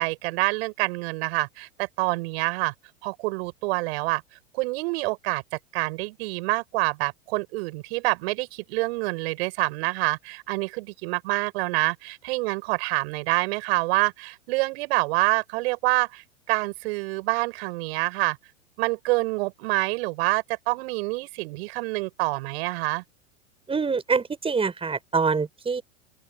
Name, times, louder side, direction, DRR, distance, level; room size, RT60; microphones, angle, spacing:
voice 1, 0.0-2.7 3.0-4.2 4.5-5.4 5.7-18.4 18.8-23.0, right 24 dB, 50° right, 7.4 m, -27 dB
voice 2, 23.7-25.8, right 5 dB, 15° right, 5.8 m, -25 dB
open air
figure-of-eight pair, 95°, 38 cm